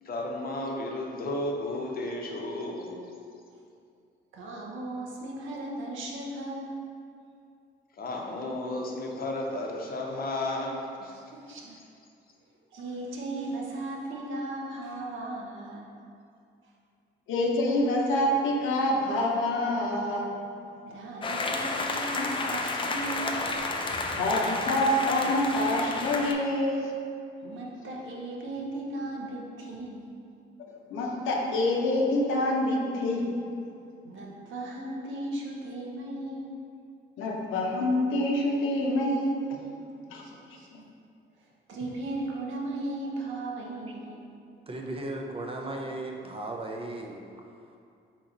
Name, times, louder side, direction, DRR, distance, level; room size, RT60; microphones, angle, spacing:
voice 1, 0.0-3.0 8.0-11.1, left 2 dB, 50° left, 0 dB, 0.7 m, -33 dB
voice 2, 4.3-6.8 11.1-11.7 12.7-15.9 20.8-23.4 27.4-30.1 34.0-36.6 40.1-40.9 41.4-44.2, right 2 dB, 75° right, -2 dB, 0.8 m, -37 dB
voice 3, 17.3-20.3 24.2-26.9 30.7-33.2 37.2-39.6 40.1-40.2, left 1 dB, 85° left, -1 dB, 0.7 m, -26 dB
sound 1, 21.2-26.3, left 3 dB, 25° left, 0.4 m, -31 dB
voice 4, 44.7-47.2, right 2 dB, 30° right, 1 dB, 0.5 m, -36 dB
4.1 x 2.9 x 3.8 m, 2.5 s
cardioid pair, 90°, 20 cm